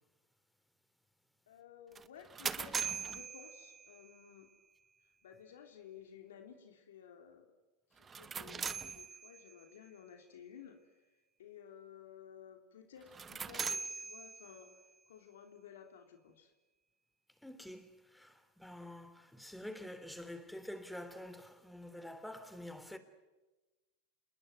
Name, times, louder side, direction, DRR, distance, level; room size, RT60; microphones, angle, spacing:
voice 1, 1.5-4.5 5.2-7.5 7.9-10.8 11.4-14.8 15.1-16.5, left 8 dB, 85° left, 3.4 m, -55 dB
sound 1, 1.9-4.2 8.0-9.6 13.0-14.8, right 6 dB, 25° right, 1.0 m, -41 dB
voice 2, 17.4-23.0, left 1 dB, 5° left, 3.3 m, -47 dB
28.5 x 20.5 x 9.4 m
hypercardioid pair, 105°, 0 cm